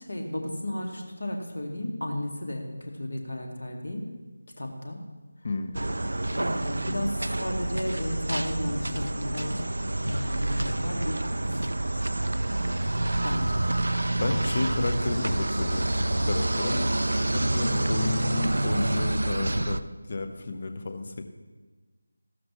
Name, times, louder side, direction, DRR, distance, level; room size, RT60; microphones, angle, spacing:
voice 1, 0.0-4.1 4.6-5.0 6.3-9.6 10.0-11.5 13.2-13.6 17.6-17.9, left 1 dB, 60° left, 2 dB, 2.1 m, -33 dB
voice 2, 5.4-5.8 14.2-16.9 17.3-21.2, left 3 dB, 40° left, 7 dB, 1.0 m, -32 dB
sound 1, 5.7-19.8, right 1 dB, 60° right, 0.5 m, -28 dB
15.0 x 12.5 x 3.2 m, 1.3 s
figure-of-eight pair, 165°, 0 cm